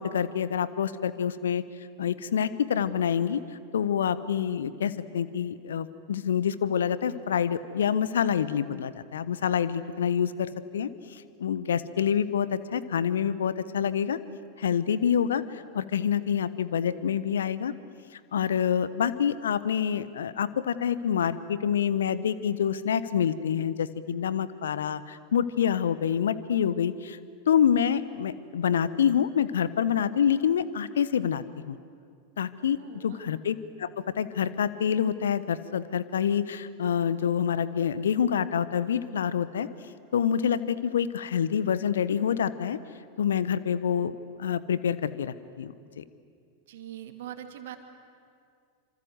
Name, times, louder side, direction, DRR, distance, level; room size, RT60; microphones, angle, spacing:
voice 1, 0.0-1.6 2.0-3.4 3.7-14.2 14.6-17.7 18.1-27.2 27.5-31.8 32.4-33.9 34.2-39.7 40.1-42.8 43.2-44.1 44.4-46.0, left 8 dB, 70° left, 16 dB, 1.1 m, -27 dB
voice 2, 32.7-33.3 46.7-47.8, right 11 dB, 60° right, 7 dB, 2.3 m, -42 dB
26.5 x 25.5 x 8.0 m, 2.3 s
figure-of-eight pair, 90°, 0 cm